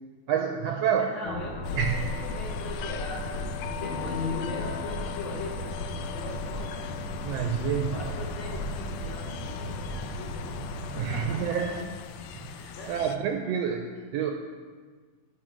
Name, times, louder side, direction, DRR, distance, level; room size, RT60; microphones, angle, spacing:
voice 1, 0.3-1.1 1.7-2.1 7.2-8.0 11.0-11.9 12.5-14.3, right 8 dB, 80° right, 3 dB, 1.5 m, -28 dB
voice 2, 0.9-6.7 7.9-11.4 12.8-13.0, left 1 dB, 45° left, -3 dB, 1.9 m, -41 dB
sound 1, 1.2-11.3, left 1 dB, 60° left, 1.4 m, -36 dB
sound 2, 1.6-13.2, left 5 dB, 80° left, 1.9 m, -38 dB
10.0 x 7.5 x 5.0 m, 1.5 s
omnidirectional pair, 3.3 m